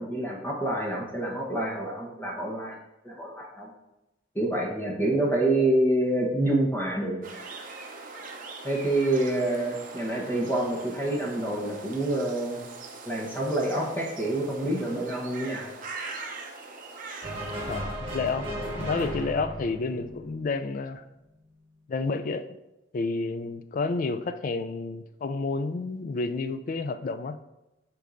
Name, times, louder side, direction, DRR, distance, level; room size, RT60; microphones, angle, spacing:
voice 1, 0.0-2.8 3.0-3.7 4.3-7.2 8.6-12.6 13.1-15.7, right 1 dB, 10° left, 1.0 m, -27 dB
sound 1, 7.2-17.7, right 3 dB, 45° right, 0.7 m, -42 dB
sound 2, 17.2-20.7, equal, 30° right, 1.9 m, -35 dB
voice 2, 17.7-21.0 21.9-22.5 22.9-27.4, left 3 dB, 45° left, 0.3 m, -30 dB
8.2 x 4.6 x 2.6 m
head